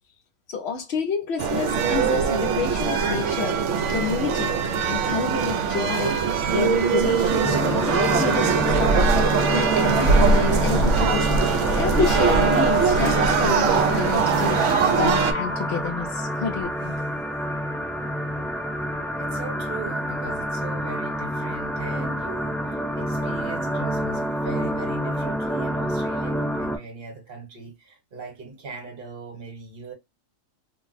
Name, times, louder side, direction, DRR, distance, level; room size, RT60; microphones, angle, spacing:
voice 1, 0.5-3.6 3.9-4.5 4.9-6.2 6.5-11.3 11.8-14.6 14.9-17.0, left 6 dB, 65° left, 0.7 m, -29 dB
sound 1, 1.4-15.3, right 5 dB, 70° right, 0.8 m, -21 dB
sound 2, 7.4-26.8, equal, ahead, 0.6 m, -28 dB
Wind, 8.5-16.6, right 1 dB, 45° left, 1.0 m, -36 dB
voice 2, 19.2-29.9, right 4 dB, 45° right, 1.1 m, -39 dB
2.5 x 2.0 x 3.9 m
omnidirectional pair, 1.4 m